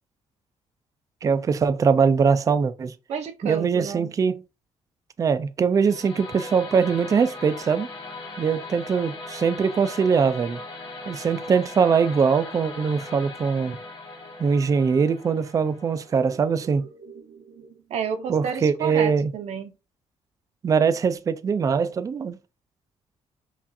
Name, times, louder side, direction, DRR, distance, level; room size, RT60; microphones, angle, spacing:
voice 1, 1.2-2.9 3.4-4.4 5.2-7.9 8.4-10.6 11.1-13.8 14.4-16.9 18.3-19.3 20.6-22.4, right 6 dB, 30° right, 0.4 m, -22 dB
voice 2, 3.1-4.1 16.3-16.7 17.0-19.7, right 7 dB, 70° right, 0.7 m, -32 dB
sound 1, 5.7-16.8, left 3 dB, 45° left, 1.7 m, -39 dB
5.7 x 2.4 x 2.6 m
cardioid pair, 135°, 12 cm